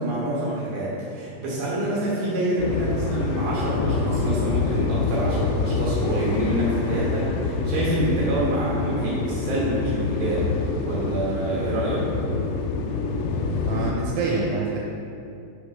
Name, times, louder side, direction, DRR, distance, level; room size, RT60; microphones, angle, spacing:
voice 1, 0.0-10.4 10.8-12.1, right 1 dB, 65° right, -7 dB, 2.8 m, -27 dB
sound 1, 2.6-13.9, left 4 dB, 80° left, 2.6 m, -26 dB
voice 2, 13.6-14.8, right 3 dB, 85° right, -2 dB, 3.1 m, -26 dB
6.8 x 5.5 x 4.7 m, 2.5 s
omnidirectional pair, 5.3 m